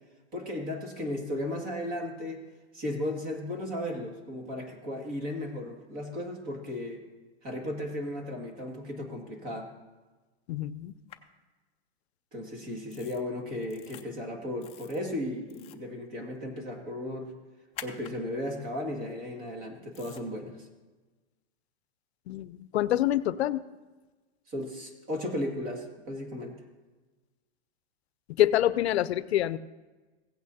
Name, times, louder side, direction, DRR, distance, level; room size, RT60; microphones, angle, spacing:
voice 1, 0.3-2.4 2.7-7.0 7.4-9.7 12.3-17.3 17.8-20.7 24.5-26.6, left 1 dB, 25° right, 2 dB, 2.0 m, -35 dB
voice 2, 10.5-10.9 22.3-23.6 28.4-29.6, left 13 dB, 75° left, 16 dB, 0.6 m, -26 dB
sound 1, 11.1-11.2 12.9-13.2 13.6-14.0 14.6-15.0 15.5-15.9 17.7-18.1 19.9-20.2, left 11 dB, 20° left, 0.5 m, -45 dB
16.5 x 8.7 x 2.8 m, 1.2 s
hypercardioid pair, 145°, 33 cm